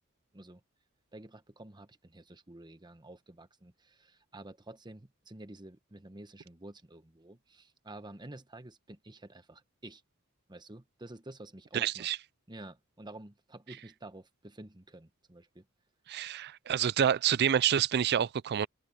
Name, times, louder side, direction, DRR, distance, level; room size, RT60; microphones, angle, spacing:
voice 1, 1.1-10.0 10.5-12.1 12.5-15.6, right 1 dB, 20° right, 1.2 m, -50 dB
voice 2, 11.7-12.2 16.1-18.7, right 9 dB, 50° right, 0.4 m, -28 dB
head